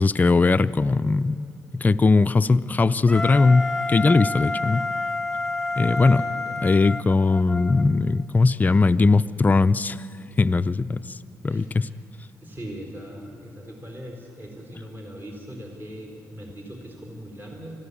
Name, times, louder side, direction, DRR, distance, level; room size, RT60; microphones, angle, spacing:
voice 1, 0.0-1.5 1.7-4.9 5.8-6.3 6.6-10.0 10.4-11.0 11.4-11.7, left 3 dB, 25° left, 13 dB, 0.4 m, -19 dB
Wind instrument woodwind instrument, 3.1-7.8, left 2 dB, 5° left, 1.4 m, -29 dB
voice 2, 5.8-6.6 11.5-12.0 12.4-17.8, equal, 30° right, 0 dB, 4.1 m, -39 dB
24.5 x 15.0 x 8.5 m, 2.6 s
cardioid pair, 100°, 6 cm